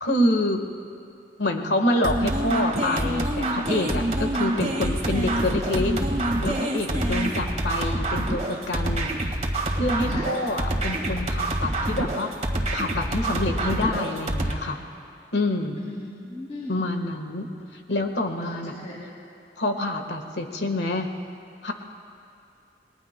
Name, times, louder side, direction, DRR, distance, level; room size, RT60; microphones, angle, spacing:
voice 1, 0.0-0.6 1.4-5.9 6.4-9.1 9.7-12.3 12.7-14.8 15.3-15.8 16.7-17.4 17.9-18.8 19.6-21.1 21.6-21.7, left 1 dB, 80° left, 5 dB, 1.4 m, -27 dB
sound 1, 2.0-14.5, right 1 dB, 40° right, 1.7 m, -26 dB
voice 2, 15.8-16.8 18.4-19.1, left 1 dB, 40° left, -7 dB, 3.3 m, -38 dB
29.5 x 21.0 x 2.2 m, 2.5 s
head